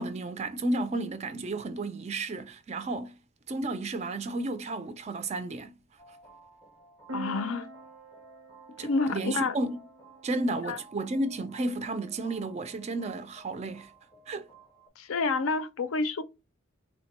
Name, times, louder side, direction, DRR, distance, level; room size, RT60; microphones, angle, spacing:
voice 1, 0.0-3.2 3.5-5.7 8.8-9.8 10.2-13.9 14.3-14.5, right 2 dB, 30° right, 0.3 m, -32 dB
sound 1, 6.0-14.9, right 1 dB, 20° left, 0.6 m, -55 dB
voice 2, 7.1-7.7 8.8-9.6 10.7-10.8 15.0-16.2, left 3 dB, 70° left, 0.5 m, -29 dB
sound 2, 7.1-10.8, right 2 dB, 90° right, 0.7 m, -45 dB
3.6 x 2.1 x 2.9 m
head